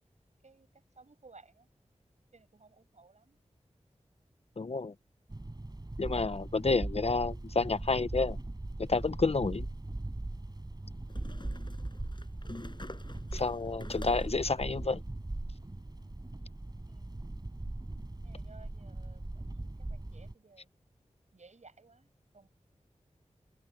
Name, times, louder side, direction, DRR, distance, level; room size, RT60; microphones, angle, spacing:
voice 1, 0.4-1.7 2.3-3.4 11.1-11.4 16.9-17.2 18.2-20.7 21.3-22.5, right 3 dB, 70° right, 7.8 m, -59 dB
voice 2, 4.6-4.9 6.0-8.4 8.8-9.7 13.3-15.0, left 3 dB, 55° left, 0.8 m, -30 dB
sound 1, 5.3-20.3, right 2 dB, 35° right, 5.3 m, -40 dB
sound 2, 9.2-9.3 11.1-14.5, left 2 dB, 40° left, 7.0 m, -48 dB
cardioid pair, 40°, 12 cm